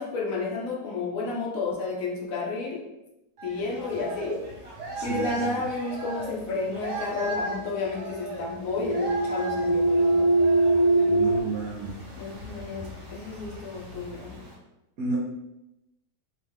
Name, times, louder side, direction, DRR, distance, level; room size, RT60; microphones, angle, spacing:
voice 1, 0.0-2.8 3.4-4.4 5.0-10.3 12.2-14.3, left 3 dB, 60° left, -2 dB, 1.1 m, -31 dB
sound 1, 3.4-14.5, right 2 dB, 45° right, 1.3 m, -38 dB
voice 2, 5.0-5.6 11.1-12.0 15.0-15.2, right 3 dB, 65° right, -2 dB, 1.0 m, -32 dB
sound 2, 7.5-11.4, right 2 dB, 80° left, 1.4 m, -23 dB
3.4 x 3.1 x 3.5 m, 0.92 s
omnidirectional pair, 1.8 m